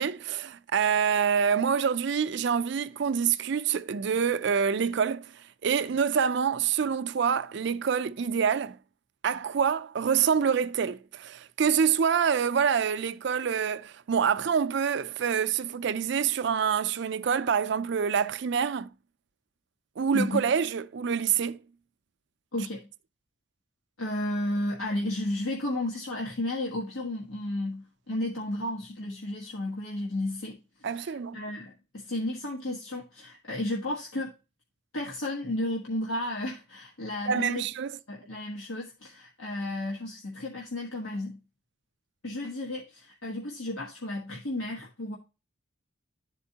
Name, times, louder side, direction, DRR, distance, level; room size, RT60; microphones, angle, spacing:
voice 1, 0.0-5.3 5.6-8.8 9.2-18.9 20.0-21.6 30.8-31.4 37.3-37.9, right 7 dB, 55° right, 0.4 m, -26 dB
voice 2, 20.1-20.5 22.5-22.9 24.0-34.4 34.9-37.7 38.1-41.4 42.2-45.2, left 1 dB, 85° left, 1.3 m, -33 dB
11.0 x 4.4 x 2.8 m
head